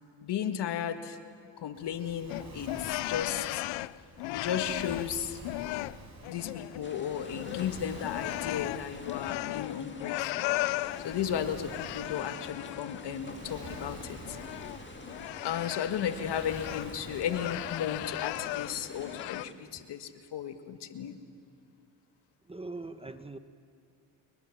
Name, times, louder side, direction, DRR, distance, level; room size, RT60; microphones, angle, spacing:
voice 1, 0.2-1.2 1.6-3.6 4.3-5.4 6.3-10.4 11.0-14.4 15.4-21.2, left 9 dB, 65° left, 8 dB, 1.8 m, -35 dB
Waves surf, 1.7-19.2, right 2 dB, 40° right, 5.7 m, -49 dB
sound 1, 2.3-5.2 5.4-6.9 7.1-11.2 11.7-13.1 13.5-16.9 17.3-18.8 19.0-19.5, left 20 dB, 85° left, 0.5 m, -36 dB
sound 2, 6.8-19.5, left 4 dB, 25° left, 2.0 m, -48 dB
voice 2, 22.4-23.4, right 3 dB, 15° right, 10 dB, 1.0 m, -41 dB
28.5 x 22.0 x 7.2 m, 2.4 s
cardioid pair, 100°, 44 cm